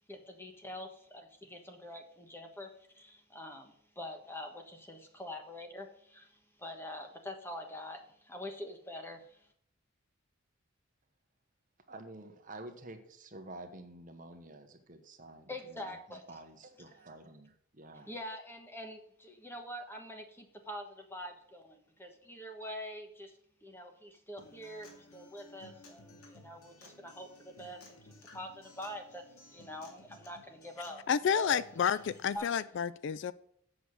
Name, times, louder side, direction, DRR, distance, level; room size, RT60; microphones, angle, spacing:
voice 1, 0.1-9.5 15.5-16.2 18.1-31.0 31.3-31.6 32.3-32.5, left 1 dB, 10° left, 1.2 m, -45 dB
voice 2, 11.8-18.1, right 2 dB, 40° right, 1.2 m, -50 dB
Acoustic guitar, 24.4-32.4, left 1 dB, 90° left, 2.3 m, -57 dB
voice 3, 31.1-33.3, left 7 dB, 55° left, 0.3 m, -30 dB
7.9 x 6.2 x 6.5 m
head